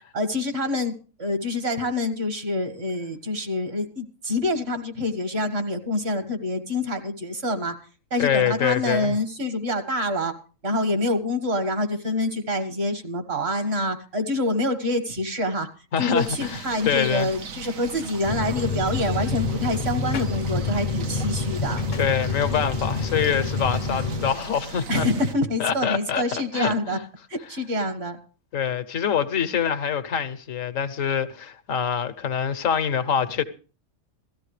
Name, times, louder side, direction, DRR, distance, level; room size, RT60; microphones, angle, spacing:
voice 1, 0.1-7.7 8.1-10.3 10.6-15.7 16.0-21.8 24.9-27.0 27.3-28.2, left 1 dB, 50° right, 1.8 m, -26 dB
voice 2, 8.2-9.2 15.9-17.3 22.0-25.1 25.6-27.0 28.5-33.4, left 8 dB, 80° left, 1.3 m, -25 dB
sound 1, 16.1-25.3, right 4 dB, 85° right, 1.5 m, -39 dB
sound 2, 18.2-24.3, left 3 dB, 45° left, 0.7 m, -27 dB
17.5 x 13.5 x 3.2 m
omnidirectional pair, 1.4 m